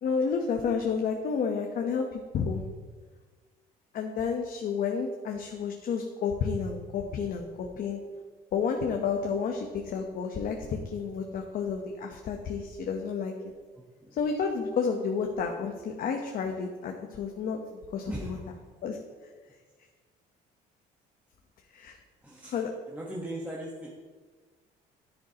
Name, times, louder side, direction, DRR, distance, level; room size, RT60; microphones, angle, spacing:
voice 1, 0.0-2.6 3.9-8.0 8.5-13.3 14.2-18.4 18.8-19.0 21.7-22.0 22.5-22.7, left 5 dB, 55° left, 2 dB, 1.0 m, -31 dB
voice 2, 18.1-18.5 22.2-23.9, right 1 dB, 10° right, -3 dB, 1.2 m, -39 dB
10.5 x 10.0 x 2.9 m, 1.4 s
cardioid pair, 110°, 17 cm